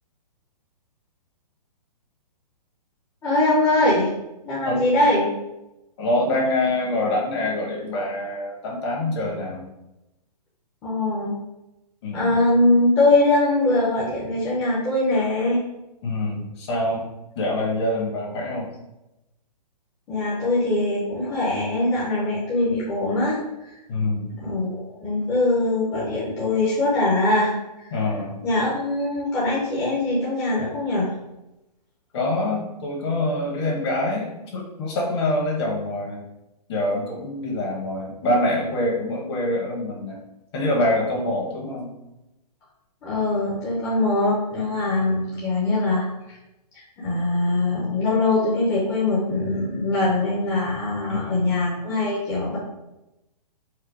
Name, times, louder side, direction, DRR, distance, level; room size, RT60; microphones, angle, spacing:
voice 1, 3.2-4.1 4.4-5.3 10.8-11.3 12.1-15.6 20.1-23.4 24.4-27.9 28.4-31.1 43.0-46.4 46.7-52.6, left 2 dB, 15° left, -8 dB, 0.8 m, -22 dB
voice 2, 6.0-9.6 12.0-12.4 16.0-17.1 17.3-18.7 23.9-24.3 27.9-28.4 32.1-36.2 36.7-40.2 40.5-41.9 51.1-51.5, left 1 dB, 40° left, -2 dB, 1.4 m, -25 dB
4.7 x 2.2 x 4.7 m, 0.95 s
hypercardioid pair, 155°, 21 cm